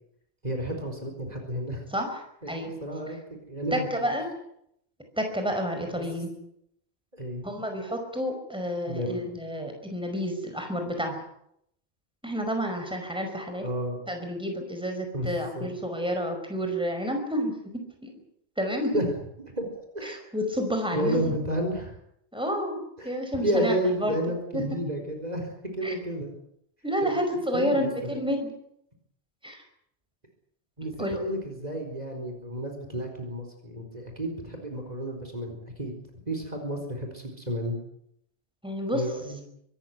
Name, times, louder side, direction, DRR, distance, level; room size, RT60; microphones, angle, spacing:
voice 1, 0.4-1.8 2.4-3.2 3.5-4.1 7.2-7.5 8.9-9.3 13.6-14.0 15.1-15.7 18.9-19.1 19.6-19.7 19.9-20.2 20.9-22.0 23.0-23.1 23.4-26.3 27.0-27.2 27.5-28.2 30.8-35.9 36.3-37.8 38.9-39.4, right 1 dB, 35° right, 3 dB, 4.5 m, -31 dB
voice 2, 1.9-2.7 3.7-4.3 5.2-6.3 7.4-11.2 12.2-13.6 14.1-17.5 18.0-18.2 18.6-19.0 20.0-21.3 22.3-24.2 24.5-24.6 25.8-25.9 26.8-28.5 29.4-29.6 31.0-31.2 38.6-39.0, equal, 5° right, 4 dB, 5.2 m, -30 dB
24.5 x 14.5 x 9.7 m, 0.74 s
omnidirectional pair, 1.2 m